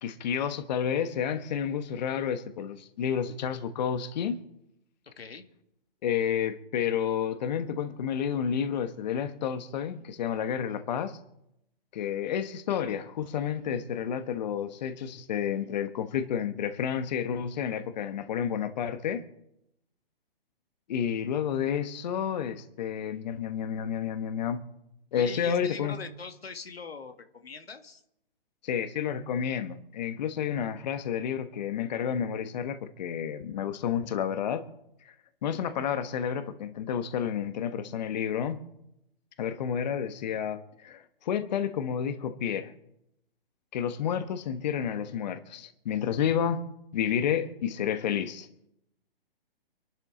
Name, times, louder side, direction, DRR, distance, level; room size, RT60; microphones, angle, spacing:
voice 1, 0.0-4.4 6.0-11.2 11.9-19.2 20.9-24.6 25.1-25.9 28.6-34.7 35.0-35.1 35.4-38.6 39.4-42.7 43.7-46.6 46.9-48.5, left 8 dB, 45° left, 10 dB, 1.2 m, -30 dB
voice 2, 5.0-5.5 25.1-28.0, left 5 dB, 85° left, 7 dB, 1.9 m, -42 dB
24.0 x 11.5 x 3.8 m, 0.82 s
hypercardioid pair, 145°, 29 cm